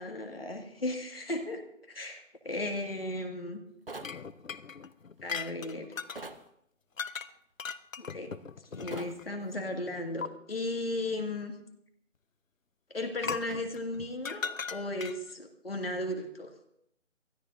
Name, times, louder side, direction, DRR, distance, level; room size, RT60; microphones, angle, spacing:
voice 1, 0.0-1.6 1.9-3.6 5.2-5.9 8.0-8.3 8.7-11.5 12.9-16.5, left 1 dB, 50° left, 4 dB, 2.1 m, -35 dB
sound 1, 3.9-4.2 6.2-6.4 8.9-9.2, right 2 dB, 45° right, 0.9 m, -42 dB
sound 2, 4.0-6.2 7.0-7.3 7.6-9.3 10.2-10.3 13.2-15.3, left 5 dB, 85° left, 0.8 m, -38 dB
23.5 x 16.0 x 2.7 m, 0.74 s
figure-of-eight pair, 175°, 39 cm